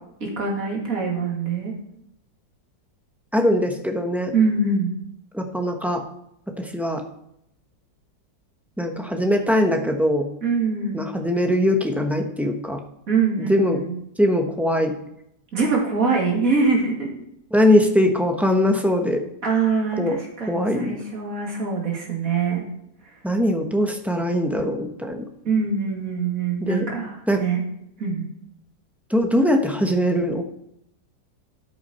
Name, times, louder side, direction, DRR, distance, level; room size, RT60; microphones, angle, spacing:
voice 1, 0.2-1.7 4.3-5.0 10.4-11.1 13.1-13.9 15.5-17.1 19.4-22.6 25.4-27.6 28.0-28.3, right 4 dB, 50° right, -2 dB, 2.9 m, -23 dB
voice 2, 3.3-4.3 5.3-6.0 6.6-7.0 8.8-10.3 10.9-12.8 13.5-13.8 14.2-14.9 17.5-19.2 20.0-20.2 20.5-21.0 23.2-25.2 26.6-26.9 27.3-27.4 29.1-30.4, left 1 dB, ahead, 2 dB, 0.7 m, -21 dB
13.5 x 8.0 x 4.3 m, 0.77 s
omnidirectional pair, 2.0 m